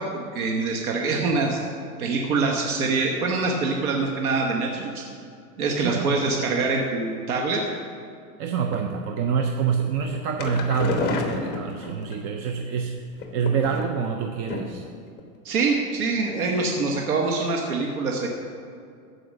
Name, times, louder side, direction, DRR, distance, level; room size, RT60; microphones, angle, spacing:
voice 1, 0.0-1.6 2.0-5.0 5.6-7.6 15.4-18.3, right 3 dB, 85° right, 0 dB, 1.5 m, -24 dB
voice 2, 5.8-6.5 8.4-14.8, right 6 dB, 30° right, 4 dB, 0.5 m, -26 dB
sound 1, 10.0-12.1 13.1-14.1 14.5-14.9 15.2-15.3 15.6-15.7, left 4 dB, 25° left, 1.1 m, -30 dB
14.5 x 5.0 x 6.5 m, 2.4 s
supercardioid pair, 145°, 42 cm